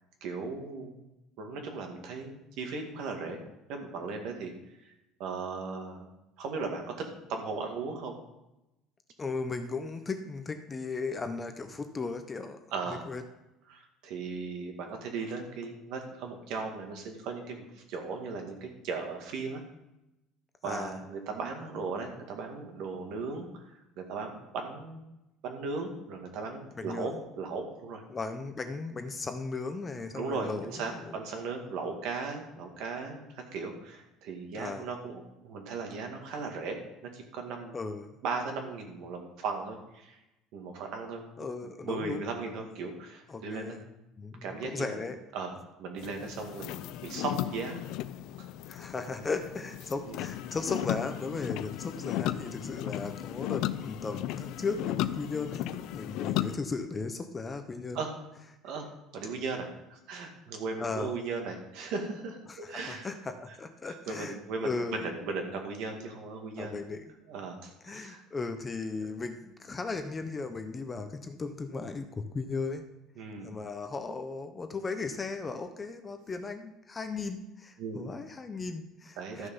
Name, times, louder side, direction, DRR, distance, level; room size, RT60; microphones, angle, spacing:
voice 1, 0.2-1.0 1.4-3.4 3.7-4.5 5.2-6.1 6.4-8.2 12.7-13.1 13.7-19.6 20.6-25.0 25.4-28.0 30.1-37.8 38.2-40.2 40.5-41.2 41.8-43.8 44.4-45.0 45.3-47.8 48.4-48.5 50.1-50.2 52.7-52.8 57.9-58.1 58.6-63.1 63.9-66.7 67.3-68.2 73.2-73.5 77.8-78.0 79.2-79.5, right 4 dB, 60° right, 3 dB, 2.1 m, -37 dB
voice 2, 9.2-12.6 13.1-13.2 20.6-20.9 26.7-27.2 28.1-31.1 34.6-34.9 37.7-38.1 41.4-42.2 43.3-43.8 44.2-45.2 48.7-55.6 55.9-58.0 60.8-61.1 62.5-64.4 64.6-65.1 66.6-67.1 67.8-72.9 73.4-79.5, left 4 dB, 15° left, 7 dB, 0.6 m, -36 dB
sound 1, 46.0-56.6, left 13 dB, 60° left, 0.4 m, -35 dB
13.0 x 6.6 x 5.5 m, 0.92 s
cardioid pair, 165°, 0 cm